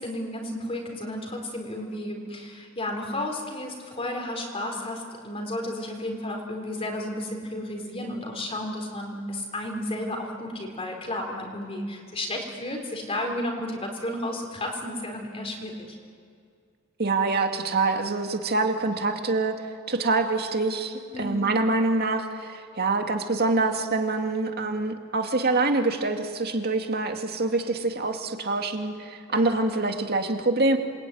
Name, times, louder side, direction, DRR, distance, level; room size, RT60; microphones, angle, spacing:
voice 1, 0.0-16.0 21.1-21.5 29.3-29.5, left 1 dB, 30° left, 1 dB, 4.0 m, -33 dB
voice 2, 17.0-30.8, right 3 dB, 50° right, 5 dB, 2.3 m, -25 dB
27.5 x 22.0 x 9.4 m, 2.2 s
head